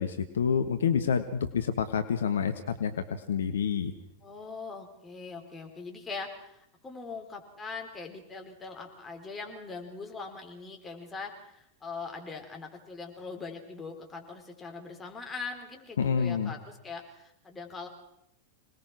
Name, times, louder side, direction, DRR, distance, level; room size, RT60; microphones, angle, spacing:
voice 1, 0.0-3.9 16.0-16.5, left 7 dB, 65° left, 9 dB, 1.3 m, -28 dB
voice 2, 4.2-17.9, left 4 dB, 15° left, 2 dB, 4.6 m, -41 dB
26.5 x 19.5 x 6.1 m, 0.77 s
figure-of-eight pair, 90°, 0 cm